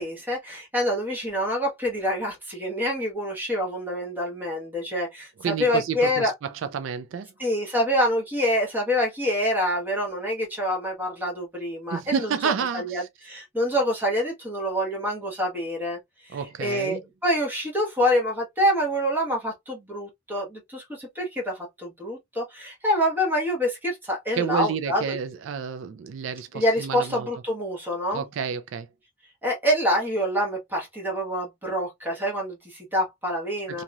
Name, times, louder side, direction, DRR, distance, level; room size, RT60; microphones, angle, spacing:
voice 1, 0.0-6.3 7.4-12.3 12.7-25.0 26.5-28.2 29.4-33.8, equal, 10° right, 1.2 m, -26 dB
voice 2, 5.4-7.3 11.9-13.1 16.3-17.0 24.3-27.3 28.1-28.9 33.7-33.8, right 6 dB, 70° right, 0.3 m, -30 dB
2.9 x 2.7 x 2.3 m
head